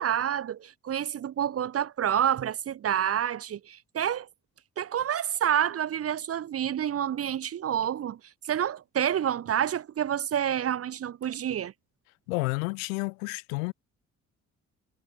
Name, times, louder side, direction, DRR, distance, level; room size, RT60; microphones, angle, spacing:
voice 1, 0.0-4.3 4.8-8.2 8.4-11.7, right 10 dB, 35° right, 0.6 m, -28 dB
voice 2, 12.3-13.7, left 30 dB, 75° left, 1.0 m, -30 dB
figure-of-eight pair, 40°, 41 cm